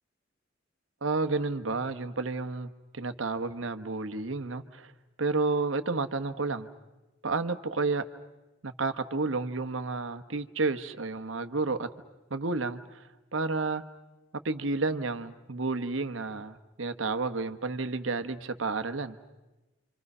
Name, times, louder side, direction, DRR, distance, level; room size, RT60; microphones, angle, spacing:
voice 1, 1.0-4.9 5.2-6.7 7.2-8.0 8.6-11.9 12.3-13.0 13.3-13.8 14.4-19.2, right 3 dB, 80° right, 10 dB, 1.1 m, -31 dB
29.5 x 26.0 x 5.5 m, 1.1 s
head